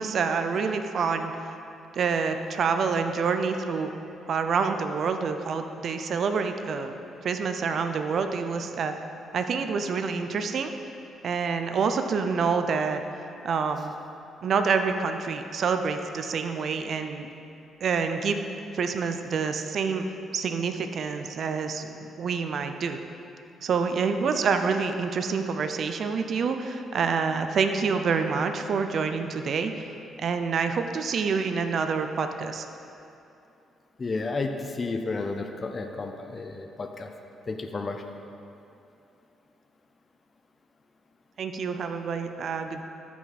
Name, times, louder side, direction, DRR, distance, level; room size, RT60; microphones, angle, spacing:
voice 1, 0.0-1.5 1.9-3.9 4.3-6.9 7.2-8.9 9.3-10.7 11.2-13.0 13.4-14.0 14.4-17.3 17.8-18.4 18.7-20.0 20.3-21.9 22.2-23.0 23.6-29.9 30.2-32.7 41.4-42.8, right 5 dB, 60° right, 7 dB, 0.6 m, -27 dB
voice 2, 34.0-37.1 37.5-38.0, left 3 dB, 35° left, 5 dB, 0.7 m, -32 dB
14.0 x 5.9 x 4.2 m, 2.7 s
cardioid pair, 90°, 0 cm